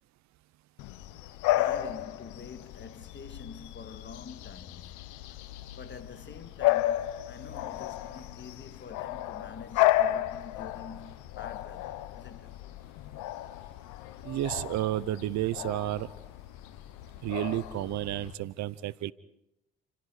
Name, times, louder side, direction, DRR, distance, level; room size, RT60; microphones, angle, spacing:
Bark / Bird vocalization bird call bird song, 0.8-18.3, left 15 dB, 70° left, 1.2 m, -33 dB
voice 1, 1.5-5.4 5.7-12.5, left 5 dB, 35° left, 2.0 m, -47 dB
voice 2, 14.2-16.1 17.2-19.1, right 14 dB, 60° right, 0.9 m, -31 dB
29.5 x 25.5 x 4.9 m
hypercardioid pair, 50°, 31 cm